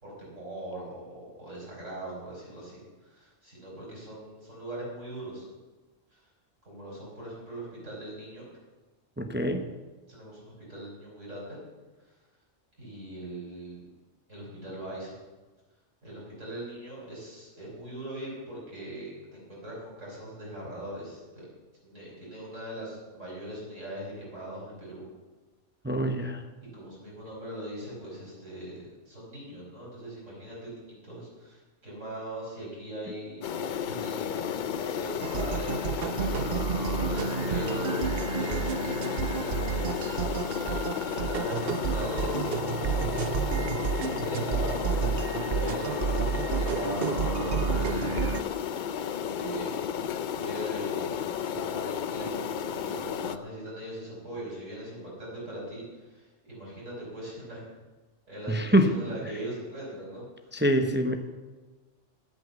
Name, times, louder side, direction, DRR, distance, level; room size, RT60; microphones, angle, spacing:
voice 1, 0.0-5.5 6.1-6.2 6.6-8.5 10.1-11.6 12.0-12.2 12.8-13.9 14.3-15.2 16.0-21.5 21.8-25.0 26.7-36.2 36.9-40.8 41.0-48.6 49.1-57.6 58.3-60.5, right 1 dB, 85° right, -5 dB, 5.7 m, -41 dB
voice 2, 9.2-9.7 25.8-26.4 58.5-58.9 60.5-61.2, equal, 10° right, 7 dB, 0.6 m, -24 dB
sound 1, 33.4-53.4, left 8 dB, 60° left, 0.5 m, -33 dB
sound 2, 35.2-48.4, right 6 dB, 55° right, 0.9 m, -30 dB
13.0 x 8.3 x 6.9 m, 1.3 s
omnidirectional pair, 1.3 m